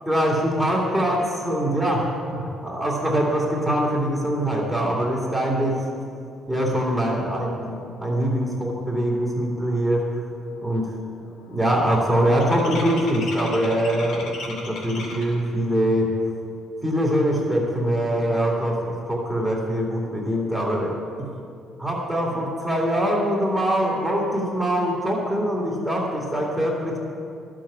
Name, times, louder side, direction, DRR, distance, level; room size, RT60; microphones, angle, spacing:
voice 1, 0.1-5.8 6.5-10.1 10.6-10.9 11.5-16.1 16.8-21.3 21.8-27.0, equal, ahead, -4 dB, 2.4 m, -23 dB
sound 1, 10.3-10.6 10.8-15.5, left 2 dB, 65° left, 2.6 m, -37 dB
12.5 x 7.6 x 8.5 m, 2.6 s
cardioid pair, 120°, 0 cm